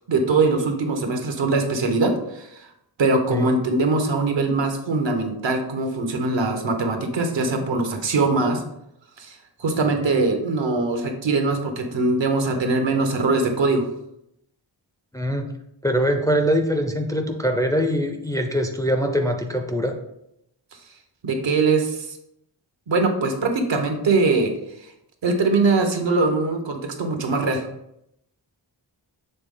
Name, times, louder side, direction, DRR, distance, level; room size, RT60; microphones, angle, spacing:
voice 1, 0.1-2.7 3.0-8.6 9.2-13.8 21.2-22.2 22.9-24.5 25.2-27.6, right 3 dB, 70° right, 4 dB, 1.1 m, -22 dB
voice 2, 15.1-15.5 15.8-20.0, equal, 10° left, 4 dB, 0.4 m, -23 dB
6.8 x 3.7 x 3.8 m, 0.80 s
wide cardioid pair, 140°, 45 cm